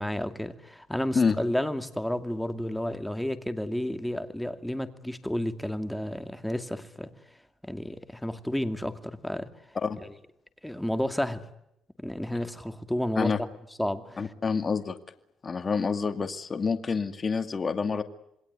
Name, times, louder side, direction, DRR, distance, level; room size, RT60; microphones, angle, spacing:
voice 1, 0.0-7.1 7.6-9.5 10.6-11.4 12.0-13.3 13.8-14.2, left 1 dB, 5° left, 9 dB, 2.5 m, -31 dB
voice 2, 14.2-15.0 15.4-18.0, left 5 dB, 35° left, 8 dB, 2.3 m, -27 dB
27.5 x 21.0 x 9.6 m, 0.81 s
cardioid pair, 90°, 0 cm